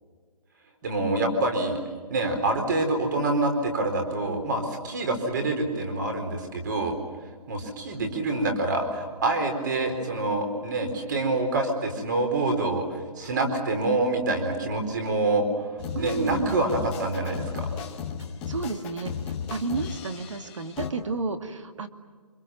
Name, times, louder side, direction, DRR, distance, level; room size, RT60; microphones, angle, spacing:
voice 1, 0.8-1.8 2.1-7.0 7.5-12.8 13.2-15.7 16.0-17.7, right 2 dB, 30° right, 5 dB, 4.2 m, -26 dB
sound 1, 15.8-20.9, left 7 dB, 5° left, 0.7 m, -35 dB
voice 2, 15.9-16.7 18.2-21.9, right 4 dB, 50° right, 8 dB, 2.2 m, -32 dB
27.5 x 26.0 x 7.5 m, 1.5 s
hypercardioid pair, 175°, 20 cm